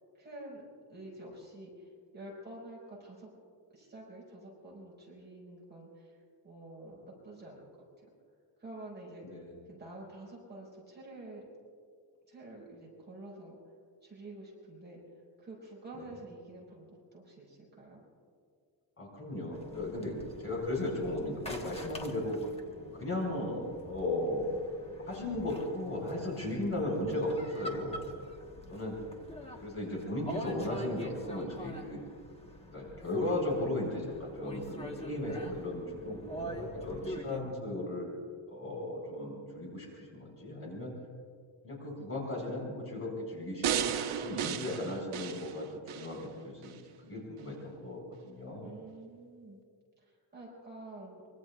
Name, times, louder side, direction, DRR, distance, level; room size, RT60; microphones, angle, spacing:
voice 1, 0.1-0.6 0.9-3.3 3.7-6.2 6.4-7.6 8.0-8.1 8.6-9.2 9.7-11.4 12.3-13.6 14.0-15.0 15.4-18.0 48.6-49.6 50.0-51.2, right 2 dB, 20° right, -5 dB, 4.9 m, -48 dB
voice 2, 9.2-9.6 15.9-16.0 19.0-22.4 23.0-24.6 25.1-28.0 28.7-29.0 29.6-32.0 32.7-38.2 38.5-40.9 41.6-48.7, left 1 dB, 25° left, -2 dB, 4.9 m, -36 dB
sound 1, 19.5-37.4, equal, 10° left, 1.2 m, -45 dB
sound 2, 43.6-46.1 46.6-46.7, right 8 dB, 90° right, 1.1 m, -33 dB
25.0 x 23.5 x 2.4 m, 2.1 s
wide cardioid pair, 175°, 48 cm